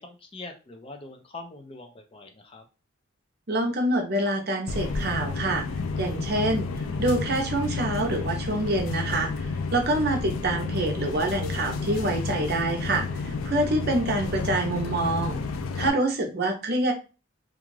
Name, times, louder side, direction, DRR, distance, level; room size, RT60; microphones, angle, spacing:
voice 1, 0.0-2.7 15.8-15.9, left 2 dB, 25° left, 5 dB, 0.5 m, -43 dB
voice 2, 3.5-5.6 6.0-6.7 7.0-15.4 15.7-16.9, right 1 dB, 50° right, 3 dB, 0.6 m, -26 dB
sound 1, 4.7-15.9, left 4 dB, 85° left, 0.4 m, -31 dB
2.5 x 2.3 x 3.1 m, 0.31 s
head